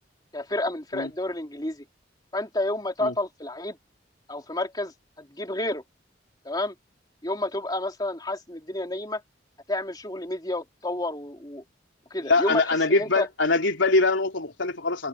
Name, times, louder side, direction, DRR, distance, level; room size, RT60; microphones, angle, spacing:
voice 1, 0.3-1.8 2.3-3.8 4.3-5.8 6.4-6.7 7.2-9.2 9.7-11.6 12.1-13.3, left 1 dB, 20° left, 3.3 m, -30 dB
voice 2, 12.2-15.1, left 3 dB, 85° left, 3.5 m, -23 dB
head